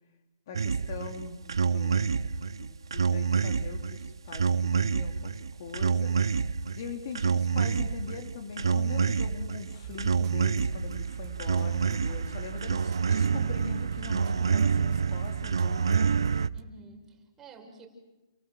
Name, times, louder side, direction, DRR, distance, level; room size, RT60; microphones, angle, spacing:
voice 1, 0.5-2.3 2.6-6.5 6.7-16.2, left 5 dB, 50° left, 5 dB, 3.1 m, -42 dB
sound 1, 0.5-16.5, right 6 dB, 85° right, 0.9 m, -28 dB
sound 2, 9.8-16.6, right 8 dB, 30° right, 1.6 m, -40 dB
voice 2, 16.5-17.9, right 3 dB, 15° right, 2 dB, 5.4 m, -50 dB
30.0 x 23.5 x 7.6 m, 1.1 s
hypercardioid pair, 155°, 2 cm